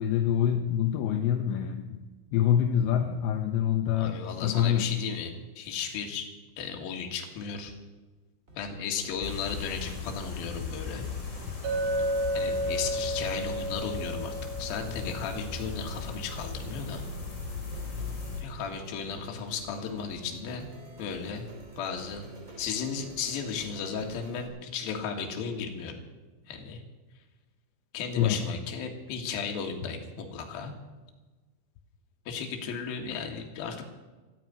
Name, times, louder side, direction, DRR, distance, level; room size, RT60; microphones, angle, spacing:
voice 1, 0.0-2.0 2.3-4.9 28.2-28.4, left 9 dB, 80° left, 4 dB, 2.8 m, -26 dB
voice 2, 3.9-5.3 5.6-6.3 6.6-7.7 8.5-11.0 12.3-17.0 18.4-20.7 21.0-21.5 21.8-22.3 22.6-26.0 26.5-26.8 27.9-30.7 32.3-33.8, left 6 dB, 60° left, 2 dB, 3.0 m, -35 dB
sound 1, 8.5-24.5, right 1 dB, 35° right, 1.2 m, -50 dB
sound 2, 9.2-18.4, left 5 dB, 30° left, 3.8 m, -38 dB
Chink clink, 11.6-16.1, right 1 dB, 70° right, 5.1 m, -32 dB
14.5 x 9.2 x 9.3 m, 1.2 s
omnidirectional pair, 5.9 m